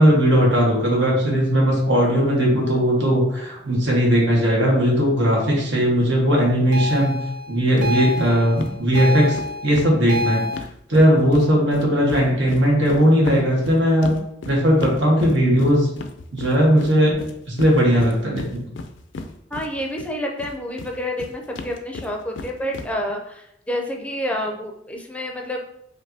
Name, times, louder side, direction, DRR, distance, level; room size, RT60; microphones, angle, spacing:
voice 1, 0.0-7.1 7.5-10.4 10.9-14.2 14.4-15.9 16.3-17.2 17.5-18.6, equal, 80° right, -3 dB, 1.4 m, -18 dB
sound 1, 6.7-10.6, left 1 dB, 50° right, 0.5 m, -28 dB
sound 2, 7.8-7.9 8.2-8.3 8.6-11.5 11.7-20.1 20.4-22.9, left 3 dB, 75° left, 0.4 m, -35 dB
voice 2, 19.5-25.7, equal, 5° left, 1 dB, 0.5 m, -29 dB
5.2 x 2.7 x 2.7 m, 0.75 s
head